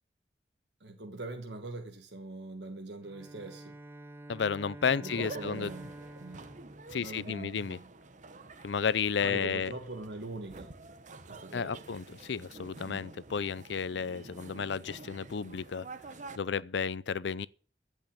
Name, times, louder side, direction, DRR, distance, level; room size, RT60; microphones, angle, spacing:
voice 1, 0.8-3.7 5.0-5.9 6.2-6.4 7.0-7.9 9.2-10.7 11.2-11.8 12.9-13.1, right 2 dB, 70° right, 1.4 m, -42 dB
Bowed string instrument, 3.0-7.8, right 1 dB, 15° right, 0.8 m, -49 dB
voice 2, 4.3-5.7 6.9-7.8 8.6-9.7 11.5-15.9 16.4-17.5, left 6 dB, 85° left, 0.5 m, -32 dB
sound 1, 5.1-16.4, right 3 dB, 45° right, 1.1 m, -49 dB
15.0 x 5.5 x 8.6 m
head